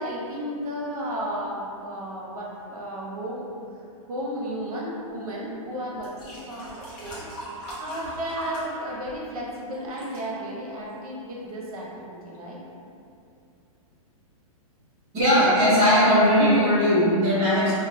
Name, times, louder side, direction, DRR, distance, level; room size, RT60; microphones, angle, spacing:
voice 1, 0.0-3.4 4.1-7.3 7.8-12.6, equal, 75° right, -4 dB, 0.7 m, -33 dB
sound 1, 6.0-9.5 9.7-10.2 10.9-11.0, right 1 dB, 25° left, 0.7 m, -40 dB
voice 2, 15.1-17.8, equal, 15° right, -14 dB, 0.6 m, -19 dB
2.2 x 2.1 x 3.7 m, 2.6 s
hypercardioid pair, 175°, 19 cm